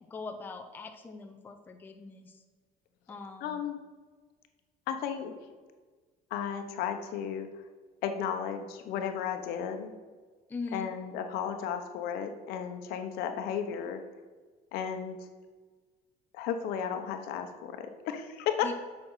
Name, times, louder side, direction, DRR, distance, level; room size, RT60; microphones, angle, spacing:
voice 1, 0.1-2.4 3.1-3.6 10.5-10.9 18.6-18.7, left 4 dB, 10° left, 5 dB, 0.5 m, -41 dB
voice 2, 3.4-3.8 4.9-5.3 6.3-7.5 8.0-9.9 10.7-14.0 14.7-15.3 16.3-18.7, left 8 dB, 70° left, 7 dB, 1.1 m, -34 dB
7.7 x 6.3 x 5.6 m, 1.4 s
cardioid pair, 175°, 16 cm